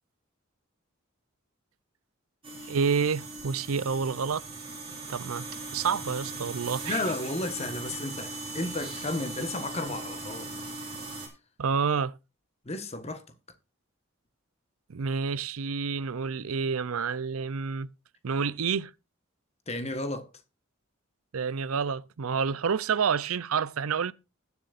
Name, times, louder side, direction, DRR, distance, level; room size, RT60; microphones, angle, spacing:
sound 1, 2.4-11.3, right 2 dB, 25° right, 3.8 m, -39 dB
voice 1, 2.7-4.4 5.1-5.5 5.7-7.0 11.6-12.1 14.9-17.9 18.2-18.9 21.3-24.1, right 6 dB, 85° right, 0.6 m, -28 dB
voice 2, 6.8-10.5 12.6-13.2 19.7-20.3, left 2 dB, 30° left, 1.4 m, -33 dB
20.5 x 7.1 x 2.5 m
head